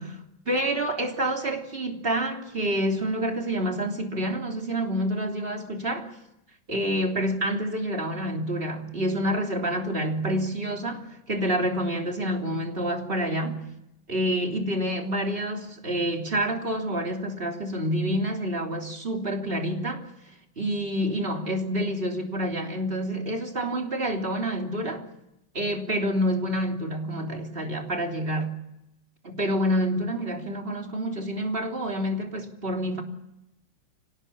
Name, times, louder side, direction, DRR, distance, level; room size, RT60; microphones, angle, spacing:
voice 1, 0.0-6.1 6.7-13.6 14.1-20.0 20.5-25.1 25.5-28.6 29.2-33.0, equal, 30° right, 3.4 m, -28 dB
25.5 x 19.0 x 8.6 m
omnidirectional pair, 2.1 m